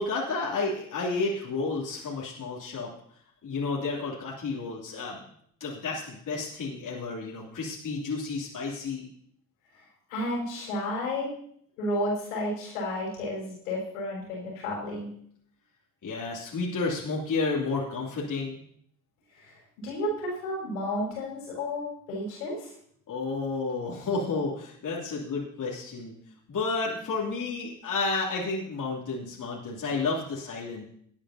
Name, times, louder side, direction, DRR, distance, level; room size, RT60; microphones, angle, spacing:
voice 1, 0.0-2.9 3.4-5.2 5.6-9.1 16.0-18.6 23.1-26.1 26.5-30.8, left 3 dB, 45° left, -4 dB, 3.1 m, -31 dB
voice 2, 10.1-11.3 11.8-15.1 19.4-22.7, left 1 dB, 80° left, -3 dB, 5.1 m, -32 dB
19.0 x 8.9 x 2.9 m, 0.64 s
hypercardioid pair, 50°, 42 cm